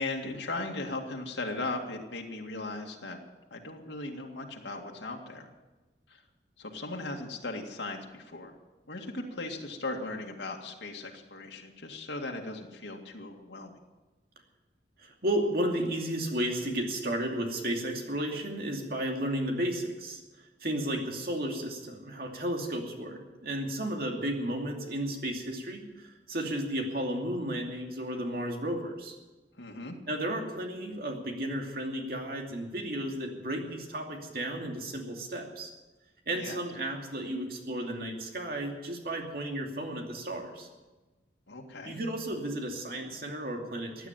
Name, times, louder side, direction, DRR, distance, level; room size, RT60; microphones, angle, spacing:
voice 1, 0.0-3.2 3.5-5.5 6.1-6.2 6.6-8.5 8.9-13.8 29.6-30.0 36.4-36.6 41.5-42.0, left 2 dB, 85° left, 1 dB, 2.2 m, -38 dB
voice 2, 15.0-20.2 20.6-29.1 30.1-35.7 36.3-40.7 41.8-44.1, right 1 dB, 55° right, 2 dB, 2.7 m, -33 dB
16.0 x 9.6 x 9.2 m, 1.2 s
head